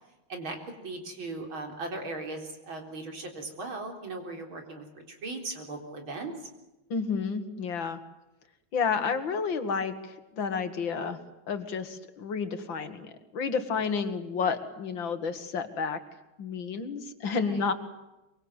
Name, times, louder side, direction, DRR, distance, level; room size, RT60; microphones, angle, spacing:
voice 1, 0.3-6.3 13.7-13.8 17.4-17.6, right 2 dB, 90° right, 3 dB, 4.8 m, -38 dB
voice 2, 6.9-8.0 8.7-11.2 11.5-16.0 16.4-17.7, left 5 dB, 70° left, 10 dB, 2.5 m, -31 dB
24.5 x 23.5 x 8.1 m, 1.0 s
omnidirectional pair, 2.2 m